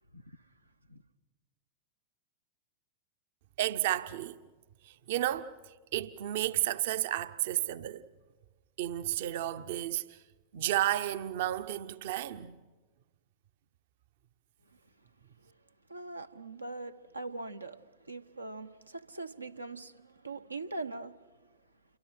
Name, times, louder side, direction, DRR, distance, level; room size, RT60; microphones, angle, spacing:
voice 1, 3.6-4.4 4.8-5.5 5.9-8.0 8.8-10.2 10.5-12.6, right 13 dB, 55° right, 0.8 m, -32 dB
voice 2, 15.9-17.8 18.1-21.2, right 2 dB, 85° right, 1.0 m, -41 dB
28.5 x 23.5 x 6.4 m
figure-of-eight pair, 90°, 0 cm